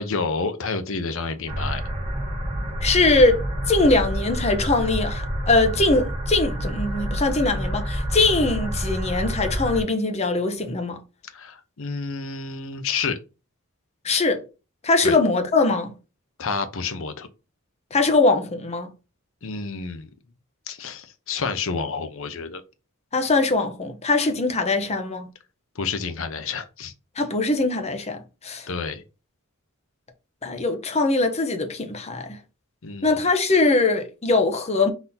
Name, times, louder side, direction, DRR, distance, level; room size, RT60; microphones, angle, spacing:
voice 1, 0.0-1.8 11.2-13.2 15.0-15.2 16.4-17.3 19.4-20.1 20.7-22.6 25.8-26.9 28.7-29.0 32.8-33.2, left 4 dB, 65° left, 0.7 m, -29 dB
sound 1, 1.5-9.8, equal, 30° right, 1.2 m, -28 dB
voice 2, 2.8-3.4 3.7-11.0 14.0-14.4 14.8-15.9 17.9-18.9 23.1-25.3 27.2-28.7 30.4-32.4 33.0-34.9, left 3 dB, 30° left, 0.7 m, -21 dB
4.0 x 2.8 x 3.8 m
head